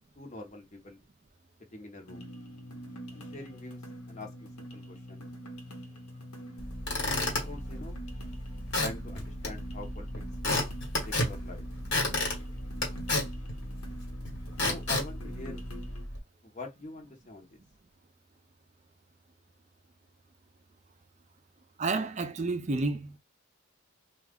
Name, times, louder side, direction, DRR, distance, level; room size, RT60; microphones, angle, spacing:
voice 1, 0.2-1.0 1.7-2.3 3.1-3.8 4.1-5.2 7.4-8.0 8.8-10.1 11.0-11.6 14.6-15.6 16.4-17.6, left 2 dB, 35° left, 0.9 m, -44 dB
sound 1, 2.1-16.0, equal, 90° left, 1.1 m, -45 dB
Squeak / Wood, 6.6-16.2, left 2 dB, 55° left, 1.4 m, -33 dB
voice 2, 21.8-23.1, right 3 dB, 35° right, 0.4 m, -30 dB
2.9 x 2.4 x 3.6 m
head